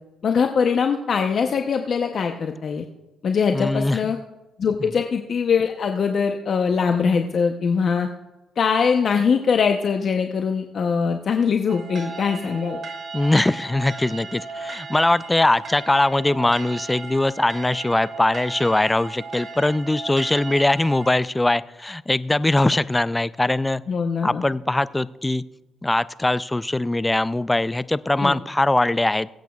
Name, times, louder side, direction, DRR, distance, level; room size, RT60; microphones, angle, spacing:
voice 1, 0.2-2.8 3.2-4.2 4.6-8.1 8.6-12.8 23.9-24.4 28.2-28.4, left 6 dB, 55° left, 5 dB, 0.7 m, -22 dB
voice 2, 3.5-4.0 4.8-4.9 13.1-23.8 24.2-25.4 25.8-29.3, left 2 dB, 15° left, 17 dB, 0.3 m, -21 dB
sound 1, 11.7-21.1, right 4 dB, 55° right, 1.4 m, -36 dB
22.5 x 8.3 x 2.3 m, 1.1 s
cardioid pair, 90°, 0 cm